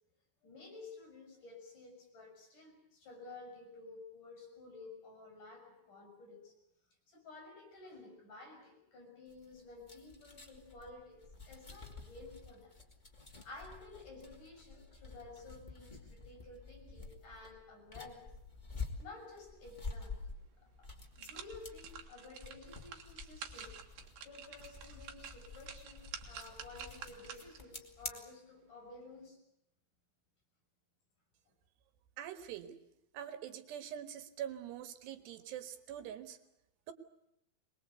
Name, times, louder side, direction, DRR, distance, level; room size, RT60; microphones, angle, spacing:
voice 1, 0.4-6.5 7.1-11.2 11.5-12.7 13.4-18.2 19.0-20.3 20.8-20.9 21.2-23.7 24.2-29.4, left 3 dB, 50° left, 3 dB, 8.0 m, -53 dB
sound 1, 9.3-28.1, left 4 dB, 15° left, 1.7 m, -49 dB
sound 2, 20.3-20.4 20.8-27.7 28.1-28.2, right 8 dB, 70° right, 3.5 m, -50 dB
voice 2, 32.2-32.8 33.1-36.4 36.9-37.0, right 10 dB, 85° right, 10 dB, 3.6 m, -44 dB
23.0 x 21.5 x 8.1 m, 0.83 s
omnidirectional pair, 4.7 m